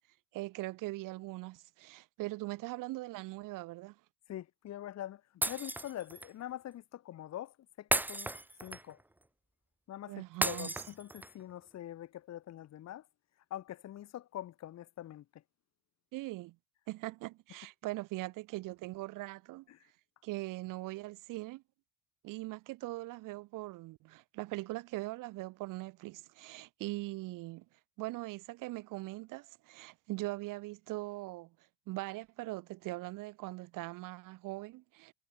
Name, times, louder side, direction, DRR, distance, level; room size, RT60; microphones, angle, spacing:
voice 1, 0.3-4.0 10.1-10.7 16.1-16.6 16.9-19.7 20.2-21.6 22.2-27.6 28.0-31.5 31.9-35.1, right 19 dB, 70° right, 4.0 m, -41 dB
voice 2, 4.3-5.2 5.5-8.3 8.6-9.0 9.9-10.1 10.4-13.0 13.5-15.2 19.7-19.8, left 12 dB, 50° left, 5.1 m, -44 dB
Shatter, 5.4-6.3 7.9-9.0 10.4-11.4, right 1 dB, 5° right, 1.1 m, -34 dB
cardioid pair, 125°, 33 cm